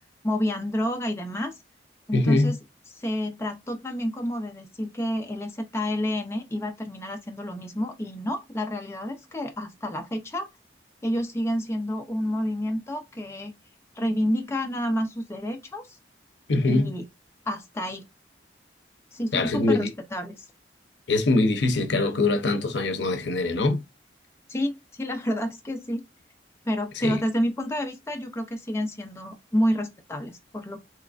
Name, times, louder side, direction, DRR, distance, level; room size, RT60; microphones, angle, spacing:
voice 1, 0.2-1.5 2.1-2.6 2.9-10.5 11.0-13.5 14.0-16.0 16.7-17.0 17.5-18.0 19.1-20.4 24.5-26.0 26.7-30.8, equal, 15° left, 0.4 m, -29 dB
voice 2, 2.1-2.5 16.5-16.9 19.3-19.9 21.1-23.8 27.0-27.2, left 2 dB, 75° left, 0.7 m, -23 dB
3.4 x 3.0 x 2.5 m
head